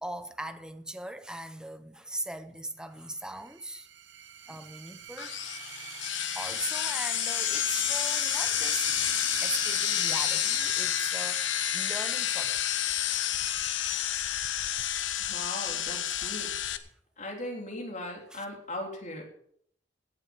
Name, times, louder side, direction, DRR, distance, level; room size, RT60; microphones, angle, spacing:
voice 1, 0.0-3.9 4.5-5.4 6.3-8.9 9.4-12.6 14.8-15.3 16.2-16.4 18.3-18.4, right 1 dB, 5° right, 0.8 m, -40 dB
sound 1, 3.2-14.5, right 9 dB, 85° right, 1.1 m, -42 dB
sound 2, 5.2-16.8, left 11 dB, 75° left, 0.9 m, -30 dB
voice 2, 15.2-16.5 17.2-19.2, left 1 dB, 40° left, 3.7 m, -38 dB
17.5 x 7.5 x 6.2 m
head